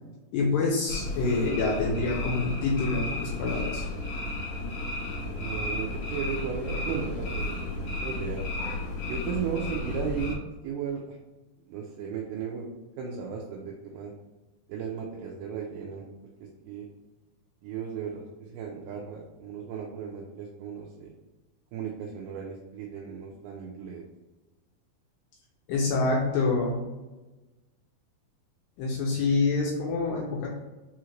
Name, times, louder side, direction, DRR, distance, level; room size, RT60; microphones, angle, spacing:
voice 1, 0.3-3.9 25.7-26.8 28.8-30.5, left 3 dB, 80° left, -2 dB, 2.3 m, -26 dB
sound 1, 0.9-10.3, left 2 dB, 65° left, 1.8 m, -33 dB
voice 2, 5.2-8.4 9.1-10.4 10.6-11.2 11.6-12.7 13.0-14.1 14.7-16.0 16.4-16.9 17.6-21.1 21.7-24.0, right 7 dB, 80° right, -2 dB, 2.2 m, -35 dB
5.6 x 2.5 x 3.1 m, 1.1 s
omnidirectional pair, 4.1 m